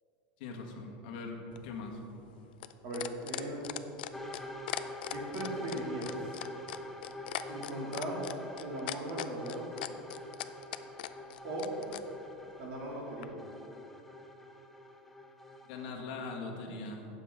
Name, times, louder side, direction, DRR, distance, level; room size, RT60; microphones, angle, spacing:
voice 1, 0.4-2.0 15.6-17.1, left 3 dB, 65° left, 1 dB, 1.7 m, -41 dB
sound 1, 1.5-12.0 13.2-13.3, left 14 dB, 85° left, 0.5 m, -39 dB
voice 2, 2.8-3.6 5.1-6.4 7.5-8.2 8.6-9.7 11.4-11.7 12.6-13.4, right 1 dB, 45° right, -3 dB, 2.6 m, -38 dB
sound 2, 4.1-15.9, left 1 dB, 5° left, 0.5 m, -45 dB
17.0 x 7.2 x 3.7 m, 2.9 s
supercardioid pair, 175°, 5 cm